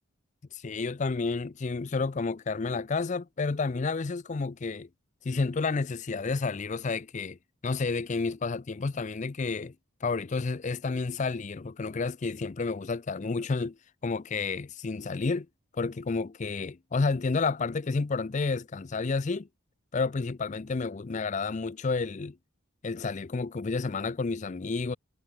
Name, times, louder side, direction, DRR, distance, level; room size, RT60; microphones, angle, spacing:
voice 1, 0.5-4.9 5.2-7.4 7.6-9.7 10.0-13.8 14.0-15.5 15.7-19.5 19.9-22.4 22.8-25.0, left 4 dB, 35° left, 0.4 m, -30 dB
head